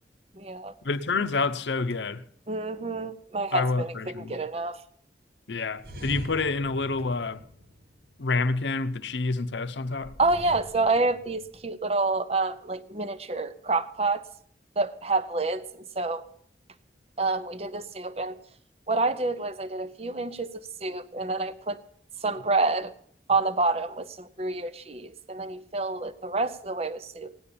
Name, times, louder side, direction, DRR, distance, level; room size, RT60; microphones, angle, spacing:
voice 1, 0.3-0.7 2.5-4.8 10.2-14.2 14.8-16.2 17.2-18.4 18.9-21.8 22.2-22.9 23.3-27.4, right 3 dB, 35° right, 0.7 m, -28 dB
voice 2, 0.8-2.2 3.5-4.4 5.5-7.4 8.2-10.1, left 3 dB, 90° left, 0.7 m, -28 dB
sound 1, 5.8-8.5 10.0-11.7, equal, 70° right, 2.0 m, -43 dB
16.5 x 10.0 x 7.0 m
head